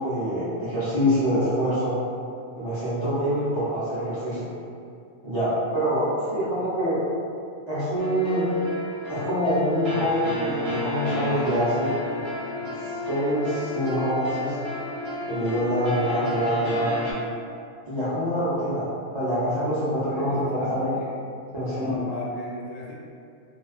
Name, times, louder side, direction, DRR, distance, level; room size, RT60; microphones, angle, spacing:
voice 1, 0.0-2.0 2.6-4.5 5.2-7.0 7.7-8.5 9.1-11.9 12.8-14.6 15.3-17.1 17.9-18.9 19.1-20.9 21.5-22.0, equal, 40° right, -13 dB, 0.4 m, -25 dB
sound 1, 8.0-17.1, left 2 dB, 60° right, 0.9 m, -32 dB
voice 2, 19.6-21.2 21.5-22.9, left 1 dB, 90° left, -4 dB, 1.0 m, -37 dB
2.3 x 2.2 x 2.4 m, 2.4 s
omnidirectional pair, 1.3 m